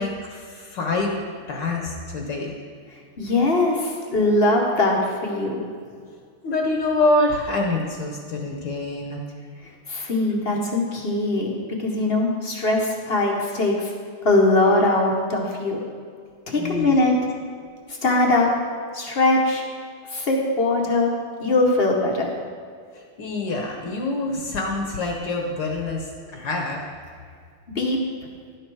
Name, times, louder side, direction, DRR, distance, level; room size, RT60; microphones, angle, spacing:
voice 1, 0.0-2.5 6.4-9.2 16.6-17.0 22.9-26.8, left 2 dB, 65° left, 1 dB, 1.5 m, -26 dB
voice 2, 3.2-5.6 9.9-11.5 11.8-13.9 14.2-15.8 16.5-17.1 18.0-18.5 18.9-19.6 20.1-21.1 21.4-22.3 27.7-28.0, left 2 dB, 40° left, 0 dB, 0.8 m, -21 dB
11.0 x 6.5 x 4.7 m, 2.1 s
omnidirectional pair, 2.3 m